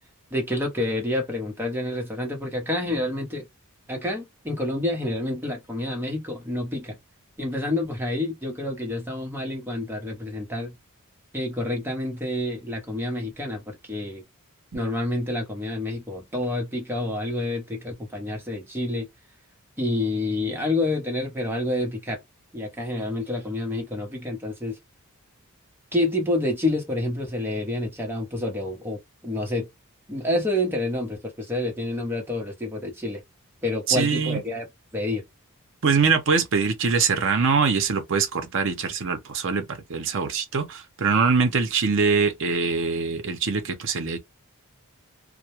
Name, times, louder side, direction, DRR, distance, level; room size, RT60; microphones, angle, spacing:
voice 1, 0.3-3.5 3.9-7.0 7.4-10.7 11.3-14.2 14.7-19.1 19.8-22.2 22.5-24.8 25.9-29.7 30.1-33.2 33.6-34.7 34.9-35.2, left 1 dB, 10° right, 0.7 m, -28 dB
voice 2, 33.9-34.4 35.8-44.2, right 5 dB, 55° right, 0.6 m, -23 dB
2.2 x 2.1 x 2.8 m
head